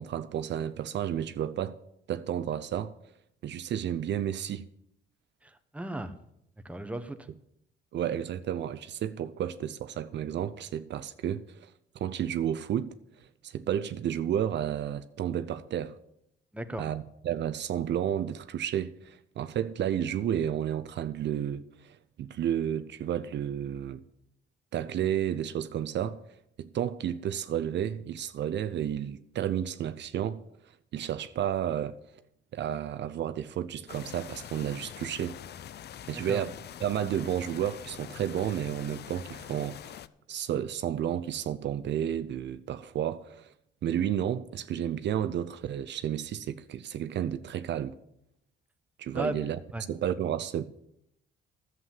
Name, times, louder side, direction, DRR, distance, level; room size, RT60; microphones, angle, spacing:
voice 1, 0.0-1.8 2.1-2.9 3.4-4.7 7.9-12.9 13.4-16.0 16.8-24.0 24.7-26.2 26.6-30.4 30.9-32.0 32.5-35.4 36.1-36.5 36.8-40.0 40.3-43.5 43.8-47.9 49.0-49.6 49.9-50.7, right 10 dB, 65° right, 0.6 m, -31 dB
voice 2, 5.4-6.1 6.6-7.3 16.5-16.8 36.3-36.5 49.1-49.3 49.7-49.8, right 2 dB, 5° right, 1.1 m, -35 dB
sound 1, 33.9-40.1, left 10 dB, 55° left, 0.6 m, -45 dB
11.0 x 7.7 x 7.3 m
cardioid pair, 90°, 20 cm